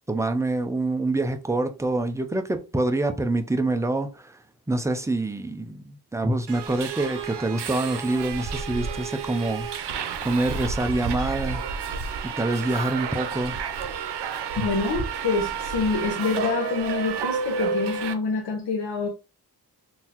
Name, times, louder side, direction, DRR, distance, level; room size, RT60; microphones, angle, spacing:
voice 1, 0.1-4.4 4.7-10.0 10.2-11.6 12.2-13.6, right 2 dB, 10° right, 0.3 m, -26 dB
Subway metro underground, 6.5-18.1, right 6 dB, 85° right, 0.6 m, -31 dB
voice 2, 14.6-19.1, left 4 dB, 90° left, 0.8 m, -26 dB
3.8 x 2.7 x 2.8 m
wide cardioid pair, 165°, 40 cm